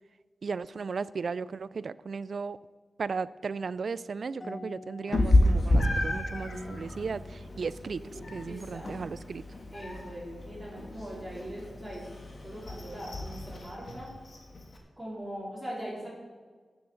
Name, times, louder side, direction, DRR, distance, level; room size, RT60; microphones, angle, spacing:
voice 1, 0.4-2.6 3.0-8.0 8.3-9.4, right 5 dB, 55° right, 18 dB, 0.3 m, -35 dB
sound 1, 4.4-9.0, left 1 dB, 15° left, 1.1 m, -46 dB
Meow, 5.1-14.8, left 1 dB, 40° left, 1.7 m, -30 dB
voice 2, 8.0-9.0 9.7-12.0 12.4-14.1 15.0-16.1, equal, 5° right, -5 dB, 3.9 m, -41 dB
14.0 x 7.1 x 6.3 m, 1.5 s
wide cardioid pair, 170°, 0 cm